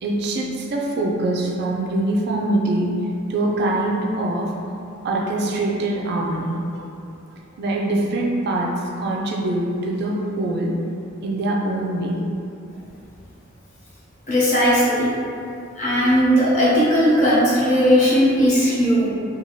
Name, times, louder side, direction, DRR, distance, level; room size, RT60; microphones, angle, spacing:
voice 1, 0.0-2.9 3.3-4.6 5.0-6.9 7.6-10.8 11.2-12.3 16.0-16.1, right 2 dB, 55° right, -1 dB, 0.3 m, -23 dB
voice 2, 14.3-15.1 15.8-19.1, equal, 35° left, -8 dB, 0.7 m, -17 dB
2.6 x 2.3 x 2.9 m, 2.6 s
head